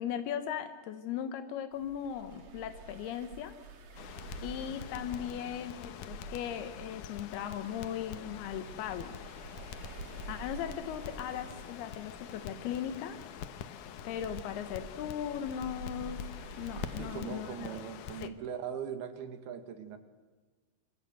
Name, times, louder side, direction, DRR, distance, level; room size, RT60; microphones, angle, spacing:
voice 1, 0.0-3.6 4.1-9.2 10.3-13.2 14.0-16.2 16.6-17.7 18.2-18.3, left 9 dB, 90° left, 8 dB, 3.2 m, -38 dB
sound 1, 1.7-17.2, right 3 dB, 50° right, 3.1 m, -49 dB
Crackle, 4.0-18.3, left 9 dB, 70° left, 2.2 m, -46 dB
voice 2, 17.0-20.0, right 7 dB, 80° right, 8 dB, 3.9 m, -40 dB
27.5 x 25.5 x 8.0 m, 1.3 s
omnidirectional pair, 4.4 m